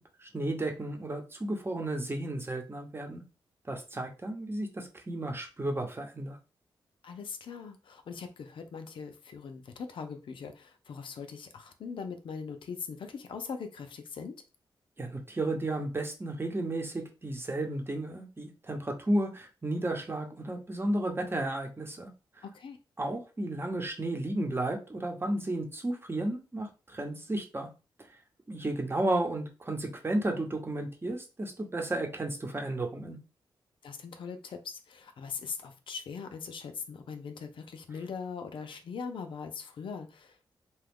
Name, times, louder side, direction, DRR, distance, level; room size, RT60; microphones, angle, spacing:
voice 1, 0.2-3.2 3.7-6.4 15.0-22.1 23.0-27.7 28.5-33.2, right 1 dB, 25° right, 2 dB, 0.9 m, -33 dB
voice 2, 7.0-14.3 22.4-22.8 33.8-40.5, left 5 dB, 75° left, 7 dB, 0.5 m, -41 dB
2.9 x 2.3 x 3.5 m, 0.32 s
cardioid pair, 65°, 9 cm